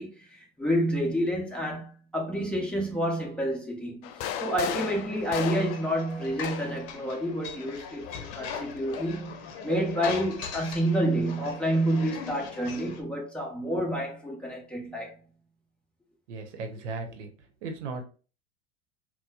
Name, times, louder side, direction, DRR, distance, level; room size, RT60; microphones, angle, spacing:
voice 1, 0.0-4.1 4.4-15.2, equal, 5° left, 0.9 m, -29 dB
sound 1, 4.0-6.9 8.0-9.1, left 10 dB, 40° left, 0.4 m, -36 dB
sound 2, 5.1-13.0, left 6 dB, 65° left, 0.8 m, -40 dB
voice 2, 16.3-17.3 17.6-18.0, right 3 dB, 85° right, 0.8 m, -36 dB
4.1 x 2.2 x 2.3 m
supercardioid pair, 115°, 34 cm